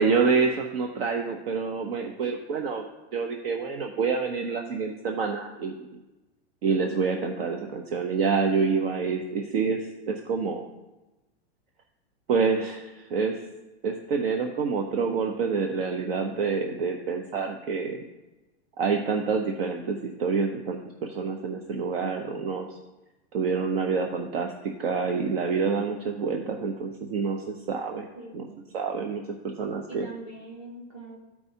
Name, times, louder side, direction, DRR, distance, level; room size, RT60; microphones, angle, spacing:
voice 1, 0.0-2.8 3.1-5.9 6.6-10.6 12.3-13.4 13.8-18.1 18.8-22.8 23.3-28.1 28.3-28.5 28.7-30.1, right 5 dB, 60° right, 3 dB, 0.8 m, -27 dB
voice 2, 28.2-28.6 29.9-31.2, right 2 dB, 35° right, -1 dB, 1.8 m, -43 dB
13.5 x 4.7 x 2.7 m, 1.1 s
supercardioid pair, 165°, 33 cm